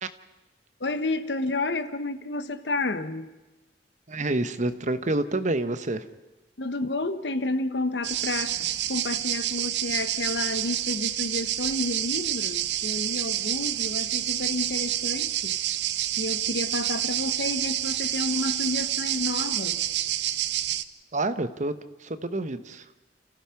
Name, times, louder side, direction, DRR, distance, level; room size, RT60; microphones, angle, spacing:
voice 1, 0.8-3.3 6.6-15.6 16.2-19.8, left 2 dB, 75° left, 1.2 m, -30 dB
voice 2, 4.1-6.0 21.1-21.7 22.0-22.8, right 2 dB, 45° right, 1.1 m, -28 dB
sound 1, 8.0-20.8, right 12 dB, 75° right, 0.7 m, -28 dB
29.5 x 15.0 x 5.9 m
head